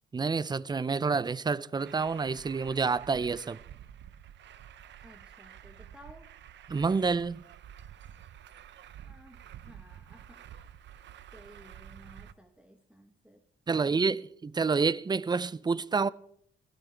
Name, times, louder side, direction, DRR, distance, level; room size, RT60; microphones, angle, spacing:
voice 1, 0.1-3.6 6.7-7.4 13.7-16.1, right 4 dB, 20° right, 0.5 m, -28 dB
Truck, 1.8-12.3, right 10 dB, 65° right, 0.7 m, -50 dB
voice 2, 5.0-6.3 9.0-10.8 11.3-13.4, equal, 5° right, 1.2 m, -55 dB
20.0 x 13.0 x 3.4 m
cardioid pair, 90°, 20 cm